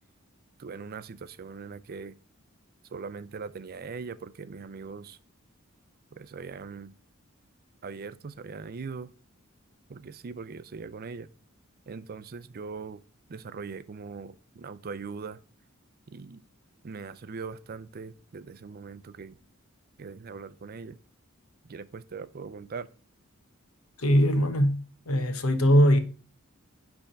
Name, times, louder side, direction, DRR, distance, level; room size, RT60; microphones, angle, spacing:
voice 1, 0.6-2.1 2.9-5.2 6.2-6.9 7.8-9.1 9.9-11.3 11.9-13.0 13.3-15.4 16.1-16.4 16.8-19.3 20.0-21.0 21.7-22.9, right 5 dB, 45° right, 0.5 m, -40 dB
voice 2, 24.0-26.0, equal, 90° left, 1.1 m, -21 dB
10.0 x 3.5 x 5.2 m
head